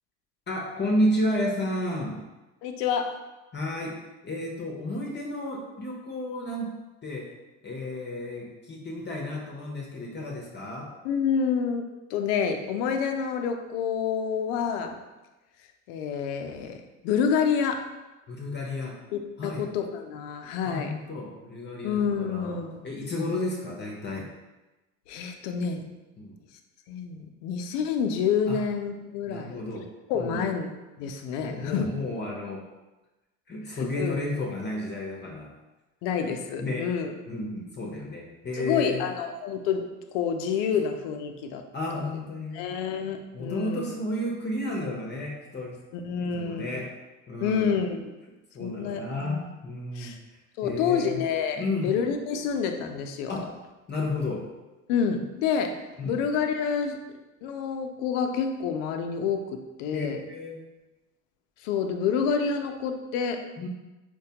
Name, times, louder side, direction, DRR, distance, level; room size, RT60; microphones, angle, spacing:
voice 1, 0.5-2.2 3.5-6.7 7.0-7.3 7.6-10.9 18.3-19.0 19.4-19.6 20.6-22.6 22.8-24.3 26.2-26.3 28.5-28.6 29.3-29.9 30.1-30.5 31.4-32.6 33.5-35.5 36.2-36.3 36.6-36.9 37.3-39.0 41.7-42.7 43.3-45.8 46.2-46.9 47.3-47.8 48.5-50.1 50.6-51.2 51.6-52.0 53.3-53.5 53.9-54.5 56.0-56.2 59.9-60.6 63.6-63.7, left 1 dB, 30° left, -1 dB, 0.7 m, -32 dB
voice 2, 2.6-3.2 11.0-11.8 12.1-15.0 15.9-16.8 17.0-17.9 19.1-20.9 21.8-22.8 25.1-25.8 26.9-29.6 30.1-30.7 31.0-31.9 33.7-34.2 36.0-37.1 38.5-39.8 40.1-41.6 41.9-42.1 42.5-43.8 45.9-46.8 47.4-48.2 48.6-49.4 49.9-50.2 50.6-53.5 54.9-55.8 56.0-57.0 57.4-60.2 61.6-63.5, left 6 dB, 85° left, 6 dB, 0.5 m, -28 dB
4.6 x 2.2 x 2.8 m, 1.1 s
supercardioid pair, 85°, 37 cm